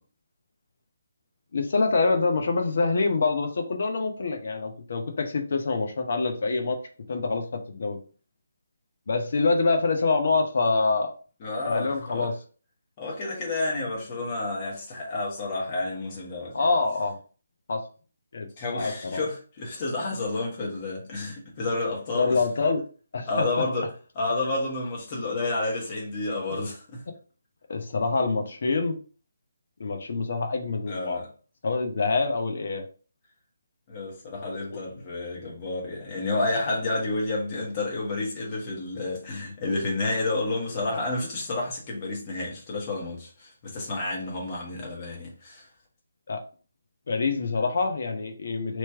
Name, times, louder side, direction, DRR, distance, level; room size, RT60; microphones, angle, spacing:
voice 1, 1.5-6.8 7.1-8.0 9.1-11.1 11.6-12.3 16.5-17.1 17.7-17.8 18.3-19.2 22.1-22.8 23.1-23.7 27.7-29.0 29.8-31.2 31.6-32.8 34.7-34.8 46.3-46.4 47.1-48.8, left 3 dB, 55° left, 0.8 m, -26 dB
voice 2, 11.4-12.3 13.0-16.7 18.6-22.4 23.3-23.9 24.1-27.0 30.9-31.3 33.9-45.7, left 2 dB, 30° left, 1.3 m, -30 dB
3.1 x 2.9 x 3.5 m
figure-of-eight pair, 145°, 0 cm